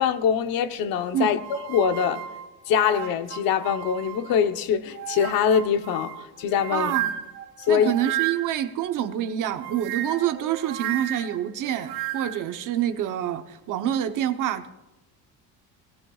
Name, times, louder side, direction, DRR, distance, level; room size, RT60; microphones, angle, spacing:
voice 1, 0.0-2.2 2.7-6.9 7.7-7.9, left 8 dB, 70° left, 1.0 m, -23 dB
sound 1, 1.2-4.5 4.9-8.7 9.4-12.5, right 12 dB, 85° right, 1.1 m, -34 dB
voice 2, 6.7-7.1 7.7-14.7, right 11 dB, 55° right, 1.0 m, -27 dB
21.0 x 18.0 x 2.4 m
cardioid pair, 145°, 37 cm